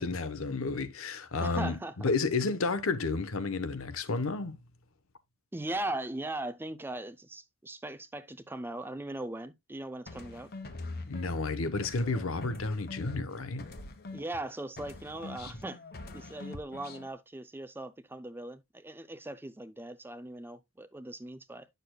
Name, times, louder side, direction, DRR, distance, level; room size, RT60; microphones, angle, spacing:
voice 1, 0.0-4.6 11.1-13.7, left 3 dB, 65° left, 0.9 m, -31 dB
voice 2, 1.4-1.9 5.5-10.5 14.1-15.8 16.1-21.7, right 1 dB, 10° right, 0.5 m, -39 dB
sound 1, 10.1-14.5 14.8-17.1, left 2 dB, 45° left, 1.1 m, -43 dB
9.4 x 6.7 x 2.2 m
head